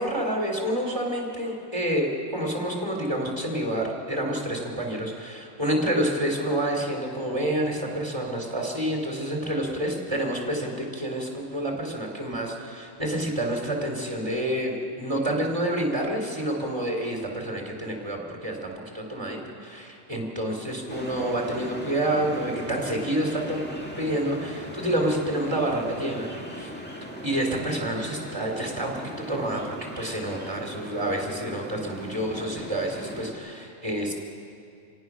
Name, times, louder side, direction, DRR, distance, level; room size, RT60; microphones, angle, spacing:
voice 1, 0.0-26.8 27.2-34.1, right 1 dB, 20° right, 0 dB, 3.4 m, -28 dB
sound 1, 20.9-33.3, equal, 10° left, 2.0 m, -39 dB
26.5 x 18.0 x 6.2 m, 2.5 s
omnidirectional pair, 1.3 m